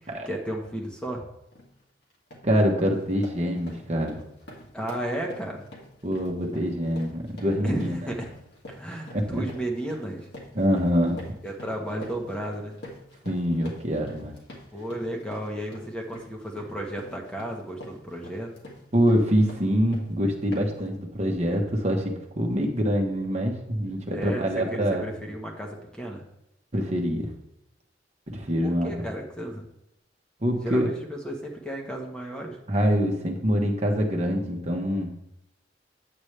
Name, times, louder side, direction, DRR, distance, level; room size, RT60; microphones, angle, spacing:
voice 1, 0.2-1.2 4.7-5.7 7.6-8.3 8.7-10.3 11.4-12.8 14.7-18.5 24.1-26.2 28.6-29.6 30.6-32.6, right 1 dB, 5° left, 0 dB, 1.1 m, -33 dB
sound 1, 1.5-1.7 2.1-2.5 2.9-20.1 20.5-20.9, left 1 dB, 65° left, 2.0 m, -45 dB
voice 2, 2.4-4.2 6.0-8.0 9.1-9.4 10.5-11.2 13.2-14.3 18.9-25.0 26.7-27.3 28.3-28.9 30.4-30.9 32.7-35.1, equal, 40° right, 1 dB, 1.2 m, -25 dB
8.8 x 8.0 x 3.3 m, 0.82 s
head